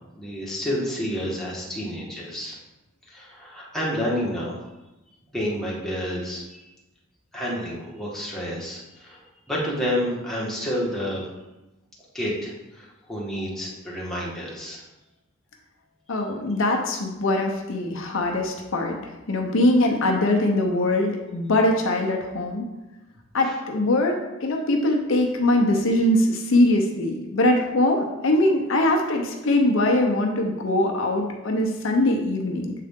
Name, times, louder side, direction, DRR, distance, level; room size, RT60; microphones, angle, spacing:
voice 1, 0.1-2.6 3.1-4.6 5.3-6.6 7.3-11.3 12.1-14.8 23.4-23.5, equal, ahead, -6 dB, 1.5 m, -29 dB
voice 2, 16.1-22.7 23.3-32.7, left 1 dB, 65° left, 2 dB, 0.7 m, -22 dB
7.5 x 3.8 x 3.6 m, 1.0 s
head